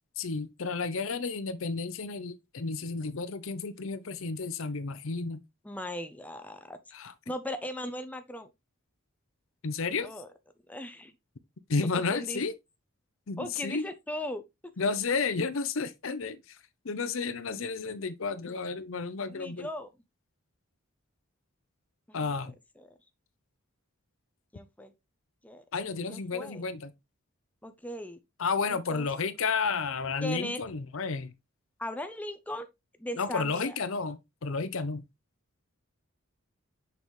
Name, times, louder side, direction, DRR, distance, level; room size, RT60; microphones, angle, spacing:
voice 1, 0.2-5.4 6.9-7.1 9.6-10.1 11.7-12.5 13.3-13.8 14.8-16.6 16.8-19.7 22.1-22.5 25.7-26.9 28.4-31.3 33.2-35.0, left 4 dB, 65° left, 0.7 m, -32 dB
voice 2, 5.6-6.8 7.3-8.5 10.0-10.3 10.7-11.1 11.8-12.4 13.4-14.4 19.2-19.9 22.1-22.3 22.8-22.9 24.5-24.9 25.4-25.6 26.1-26.6 27.6-28.2 28.7-29.1 30.2-30.6 31.8-32.7 33.0-33.8, left 1 dB, 5° left, 0.6 m, -38 dB
6.4 x 5.3 x 3.1 m
head